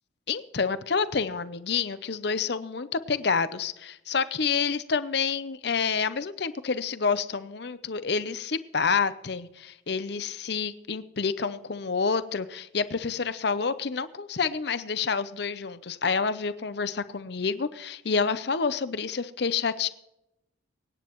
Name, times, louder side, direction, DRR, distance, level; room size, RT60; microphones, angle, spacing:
voice 1, 0.3-19.9, left 5 dB, 55° left, 14 dB, 0.6 m, -28 dB
24.5 x 9.6 x 3.0 m, 0.87 s
head